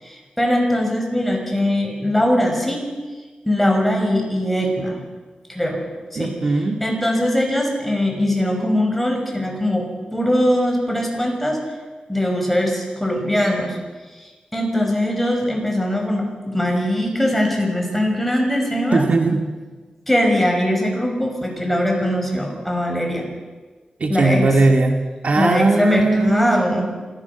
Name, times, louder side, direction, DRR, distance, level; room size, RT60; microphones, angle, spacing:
voice 1, 0.0-2.8 3.4-5.0 5.5-5.8 6.1-6.5 6.8-11.6 12.1-13.8 14.1-19.0 20.1-23.3 24.1-24.4 25.4-26.9, left 1 dB, 5° left, 1 dB, 6.1 m, -21 dB
voice 2, 6.2-6.8 18.9-19.4 24.0-26.9, right 3 dB, 65° right, 4 dB, 2.0 m, -19 dB
27.0 x 15.0 x 7.0 m, 1.3 s
wide cardioid pair, 90°, 2 cm